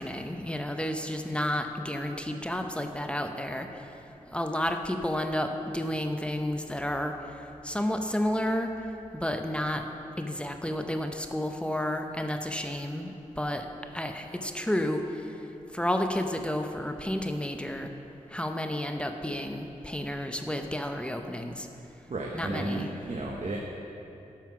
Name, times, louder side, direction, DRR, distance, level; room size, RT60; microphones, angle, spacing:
voice 1, 0.0-3.7 4.3-7.1 7.6-8.7 9.1-9.8 10.2-13.1 13.4-13.7 13.9-15.0 15.7-17.9 18.3-21.7 22.3-22.9, left 1 dB, 10° left, 5 dB, 0.8 m, -31 dB
voice 2, 22.1-23.6, right 2 dB, 55° right, -1 dB, 0.9 m, -33 dB
9.4 x 5.6 x 6.0 m, 2.8 s
cardioid pair, 50°, 13 cm